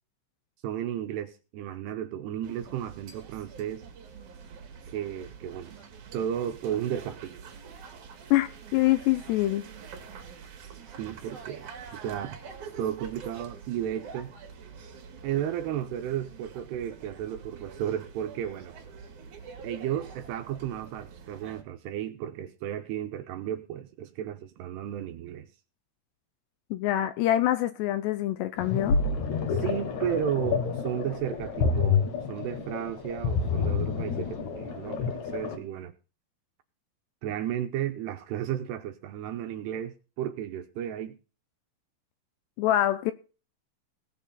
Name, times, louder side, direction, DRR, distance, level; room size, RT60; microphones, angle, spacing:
voice 1, 0.6-3.9 4.8-5.7 6.1-7.4 11.0-12.4 12.8-14.3 15.2-18.7 19.6-25.5 29.5-35.9 37.2-41.2, right 10 dB, 75° right, 2.7 m, -33 dB
sound 1, 2.4-21.6, right 6 dB, 50° right, 3.0 m, -46 dB
voice 2, 8.3-9.6 26.7-29.0 42.6-43.1, left 14 dB, 80° left, 2.6 m, -25 dB
sound 2, 28.6-35.6, left 5 dB, 60° left, 2.0 m, -29 dB
18.5 x 6.6 x 5.6 m
omnidirectional pair, 5.4 m